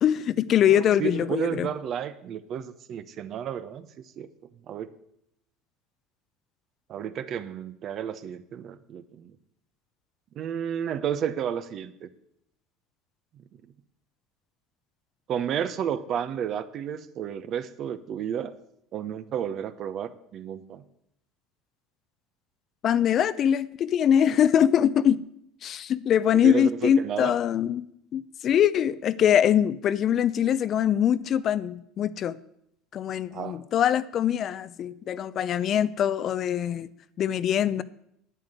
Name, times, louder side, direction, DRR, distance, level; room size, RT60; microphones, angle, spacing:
voice 1, 0.0-1.7 22.8-25.2 25.6-27.8 28.1-32.4 32.9-36.9 37.2-37.8, left 9 dB, 45° left, 16 dB, 0.6 m, -23 dB
voice 2, 0.7-3.9 4.2-4.3 4.7-4.9 6.9-9.3 10.4-12.1 15.3-18.5 18.9-20.8 26.4-27.4 33.3-33.6, right 9 dB, 50° right, 13 dB, 1.0 m, -32 dB
9.2 x 9.1 x 7.9 m, 0.75 s
supercardioid pair, 95°, 0 cm